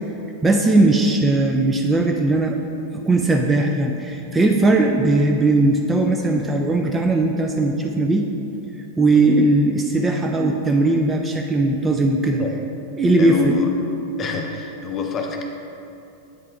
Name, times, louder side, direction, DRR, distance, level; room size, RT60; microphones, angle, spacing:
voice 1, 0.4-2.6 3.0-8.3 9.0-12.4 13.0-13.5, right 2 dB, 15° right, 2 dB, 0.3 m, -18 dB
voice 2, 13.2-13.7 14.2-15.4, left 5 dB, 25° left, 2 dB, 0.6 m, -26 dB
8.2 x 5.8 x 2.3 m, 2.7 s
figure-of-eight pair, 90°, 0 cm